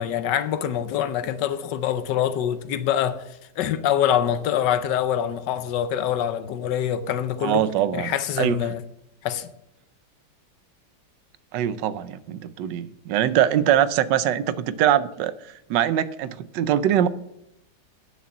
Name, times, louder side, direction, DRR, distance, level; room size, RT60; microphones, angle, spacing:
voice 1, 0.0-3.2 3.6-7.7 7.9-8.8 9.2-9.5, left 10 dB, 80° left, 1.4 m, -25 dB
voice 2, 7.4-8.6 11.5-17.1, right 10 dB, 85° right, 1.3 m, -23 dB
9.6 x 6.5 x 7.1 m
omnidirectional pair, 1.9 m